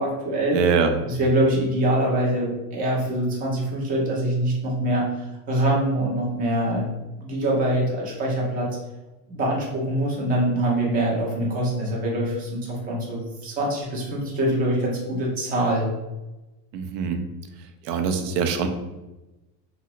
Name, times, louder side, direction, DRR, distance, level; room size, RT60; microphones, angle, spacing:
voice 1, 0.0-0.6 1.1-5.1 5.5-8.7 9.3-15.9, right 1 dB, 20° right, -3 dB, 0.4 m, -24 dB
voice 2, 0.5-1.0 16.7-17.2 17.8-18.7, right 6 dB, 75° right, 6 dB, 0.6 m, -23 dB
3.3 x 2.0 x 2.9 m, 1.0 s
cardioid pair, 170°, 48 cm